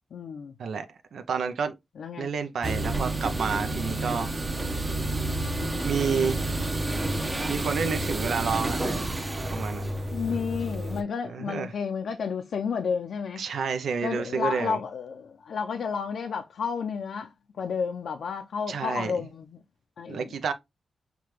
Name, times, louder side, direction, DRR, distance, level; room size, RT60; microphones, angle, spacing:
voice 1, 0.1-0.5 2.0-2.3 5.6-5.9 10.1-13.5 14.0-19.5 20.0-20.4, left 6 dB, 80° left, 0.5 m, -31 dB
voice 2, 1.1-1.7 2.2-4.3 5.8-6.4 7.5-9.1 9.5-9.9 11.3-11.7 13.4-14.8 18.7-19.2 20.1-20.5, right 5 dB, 85° right, 0.4 m, -29 dB
sound 1, 2.6-11.0, right 2 dB, 20° right, 0.7 m, -30 dB
5.8 x 2.2 x 3.1 m
wide cardioid pair, 105°, 0 cm